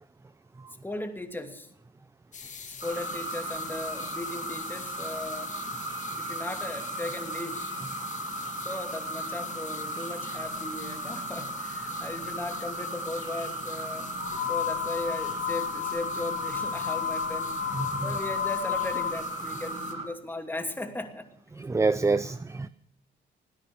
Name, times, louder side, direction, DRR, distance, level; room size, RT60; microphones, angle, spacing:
voice 1, 0.8-1.7 2.8-5.5 6.2-7.7 8.6-14.1 14.5-17.5 18.0-21.3, left 1 dB, 10° left, 5 dB, 2.7 m, -37 dB
sound 1, 2.3-19.9, left 6 dB, 40° left, 1.6 m, -44 dB
sound 2, 2.8-20.1, right 1 dB, 30° right, 6.4 m, -36 dB
sound 3, 14.2-19.2, left 10 dB, 70° left, 4.6 m, -32 dB
voice 2, 17.7-18.1 21.6-22.7, right 3 dB, 15° right, 14 dB, 0.6 m, -27 dB
18.5 x 10.0 x 6.8 m, 0.66 s
cardioid pair, 90°, 20 cm